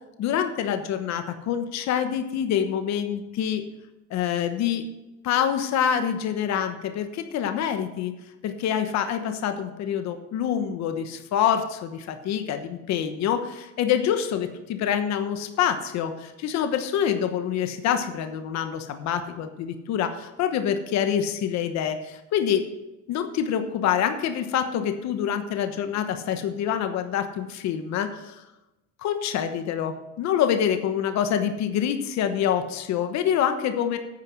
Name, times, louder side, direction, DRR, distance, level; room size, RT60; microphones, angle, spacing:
voice 1, 0.2-3.6 4.1-4.8 5.2-8.1 8.4-22.6 23.1-28.4 29.0-34.0, left 9 dB, 60° left, 8 dB, 1.1 m, -26 dB
9.2 x 9.1 x 6.1 m, 0.97 s
cardioid pair, 175°, 30 cm